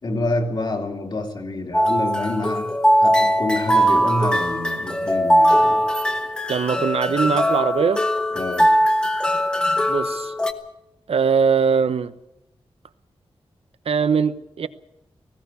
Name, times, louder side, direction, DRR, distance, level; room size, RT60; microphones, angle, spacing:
voice 1, 0.0-5.9 8.3-8.7, left 2 dB, 45° left, 2.7 m, -27 dB
sound 1, 1.7-10.5, equal, 10° left, 1.4 m, -20 dB
voice 2, 6.5-8.0 9.9-10.3 11.1-12.1 13.8-14.7, right 6 dB, 75° right, 1.0 m, -21 dB
19.0 x 16.5 x 8.4 m
wide cardioid pair, 150°, 10 cm